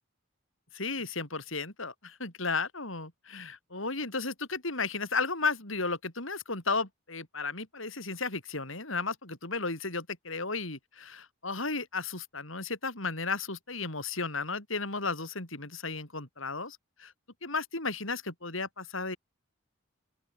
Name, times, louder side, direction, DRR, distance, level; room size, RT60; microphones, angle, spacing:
voice 1, 0.7-17.1 17.4-19.2, left 4 dB, 75° left, 6.5 m, -34 dB
open air
head